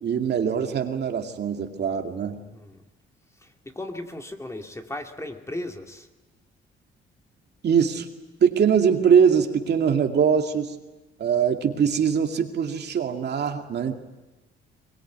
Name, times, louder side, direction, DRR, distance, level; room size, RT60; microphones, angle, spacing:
voice 1, 0.0-2.4 7.6-8.1 8.4-10.7 11.2-13.9, right 7 dB, 55° right, 4 dB, 2.4 m, -22 dB
voice 2, 3.4-6.1, left 1 dB, 15° left, 4 dB, 2.3 m, -36 dB
23.0 x 21.5 x 9.5 m, 1.1 s
cardioid pair, 90°, 20 cm